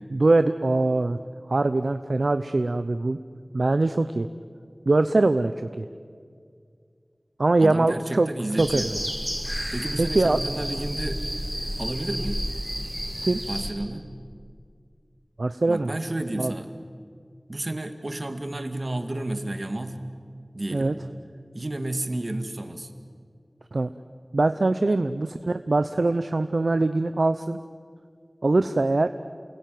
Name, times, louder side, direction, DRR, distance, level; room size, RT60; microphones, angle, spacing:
voice 1, 0.1-1.2 1.5-3.2 3.5-4.3 4.9-5.9 7.4-8.3 8.6-9.0 10.0-10.4 13.2-13.4 15.4-15.9 16.4-16.5 20.7-20.9 23.7-23.9 24.3-27.6 28.4-29.1, right 2 dB, 85° right, 10 dB, 0.7 m, -22 dB
voice 2, 7.6-8.9 9.7-11.2 11.8-12.5 13.5-14.1 15.7-16.7 17.5-20.1 20.5-21.1 21.5-22.9 24.9-25.0, right 1 dB, 55° right, 7 dB, 2.2 m, -31 dB
sound 1, 8.6-13.7, equal, 5° left, 5.1 m, -31 dB
29.0 x 21.0 x 9.4 m, 2.2 s
wide cardioid pair, 45°, 0 cm